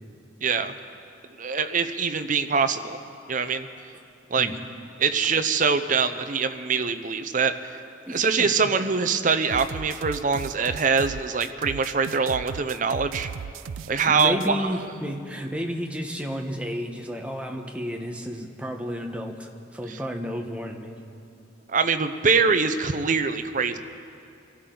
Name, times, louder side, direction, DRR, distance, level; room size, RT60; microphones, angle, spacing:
voice 1, 0.4-0.7 1.4-3.0 3.3-3.7 4.3-4.5 5.0-7.7 8.1-13.3 13.9-14.8 19.9-20.0 21.7-23.8, right 5 dB, 40° right, 10 dB, 0.6 m, -24 dB
voice 2, 8.1-8.5 14.1-21.0, equal, 5° right, 2 dB, 1.0 m, -32 dB
sound 1, 9.5-14.5, right 6 dB, 90° right, 0.4 m, -36 dB
24.5 x 13.0 x 3.9 m, 2.5 s
head